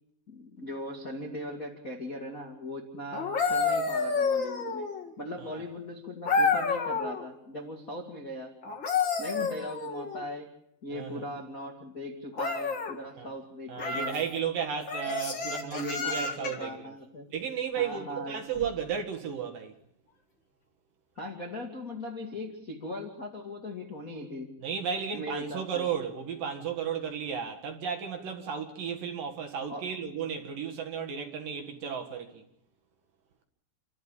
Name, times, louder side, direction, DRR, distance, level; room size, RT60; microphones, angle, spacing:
voice 1, 0.3-4.9 5.2-8.6 9.2-10.5 10.8-14.2 15.6-17.3 17.8-18.4 21.1-24.5 25.1-25.9 29.7-29.9, left 1 dB, 80° left, 0.7 m, -39 dB
sound 1, 3.1-5.1 6.3-7.2 8.6-10.2 12.3-12.9 13.8-14.2 14.9-16.7 18.5-18.7, left 4 dB, 60° left, 1.2 m, -29 dB
voice 2, 10.9-11.3 13.1-13.3 13.7-16.9 17.3-19.7 24.6-32.4, right 7 dB, 55° right, 2.9 m, -34 dB
29.0 x 13.0 x 8.9 m
omnidirectional pair, 5.8 m